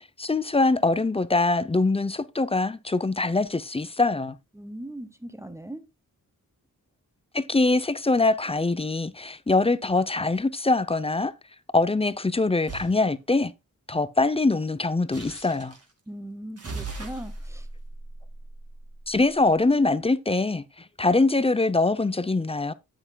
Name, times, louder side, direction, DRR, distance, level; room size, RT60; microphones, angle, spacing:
voice 1, 0.2-4.4 7.3-11.3 11.7-13.5 13.9-15.7 19.1-20.6 21.0-22.7, left 3 dB, 15° left, 0.6 m, -23 dB
voice 2, 4.5-5.8 16.1-17.7, right 1 dB, 10° right, 0.9 m, -39 dB
sound 1, 12.7-13.0 15.1-15.8 16.6-19.2, right 3 dB, 45° right, 2.0 m, -38 dB
9.9 x 7.9 x 2.3 m
cardioid pair, 60°, 34 cm